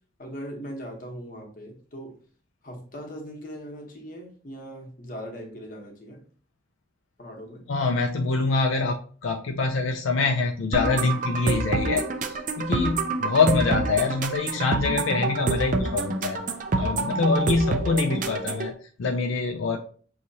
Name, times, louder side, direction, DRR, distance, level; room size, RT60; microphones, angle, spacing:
voice 1, 0.2-2.2 2.6-6.2 7.2-7.6, equal, 45° left, 1 dB, 1.0 m, -39 dB
voice 2, 7.7-16.4 16.8-19.8, left 4 dB, 80° left, 3 dB, 0.4 m, -25 dB
sound 1, 10.7-18.7, right 3 dB, 40° right, 0.4 m, -27 dB
6.0 x 2.8 x 2.7 m, 0.44 s
head